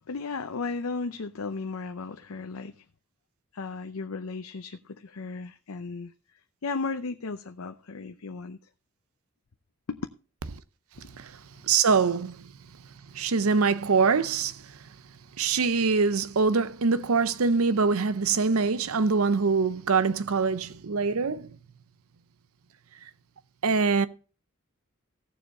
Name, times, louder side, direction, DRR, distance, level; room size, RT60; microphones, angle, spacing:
voice 1, 0.1-2.8 3.5-6.1 6.6-8.6 9.9-10.1 11.0-11.2, left 4 dB, 80° left, 0.7 m, -35 dB
voice 2, 11.6-12.4 13.1-14.6 15.4-21.5 23.6-24.1, right 4 dB, 80° right, 0.7 m, -24 dB
16.0 x 7.1 x 4.2 m
head